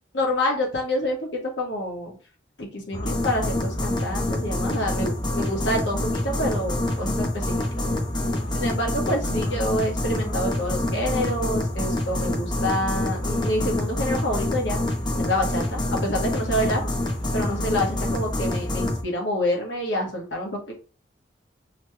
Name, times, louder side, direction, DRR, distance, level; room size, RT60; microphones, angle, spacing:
voice 1, 0.1-2.1 2.6-7.9 8.5-14.8 15.2-16.8 17.3-20.7, left 1 dB, 80° left, 0 dB, 1.1 m, -27 dB
sound 1, 2.9-19.0, left 1 dB, 25° left, 0.6 m, -26 dB
3.0 x 2.2 x 3.1 m, 0.36 s
head